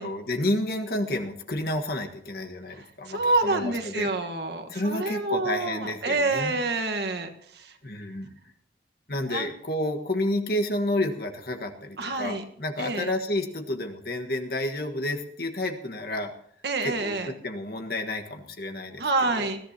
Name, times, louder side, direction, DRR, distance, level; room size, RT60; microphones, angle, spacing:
voice 1, 0.0-4.1 4.7-6.6 7.8-8.3 9.1-16.3 16.8-19.0 19.3-19.5, left 1 dB, 55° left, 4 dB, 1.6 m, -30 dB
voice 2, 2.8-7.7 9.3-9.5 12.0-12.4 12.8-13.1 16.6-17.3 19.0-19.6, right 2 dB, 65° right, 6 dB, 1.5 m, -27 dB
21.0 x 14.0 x 2.9 m, 0.68 s
head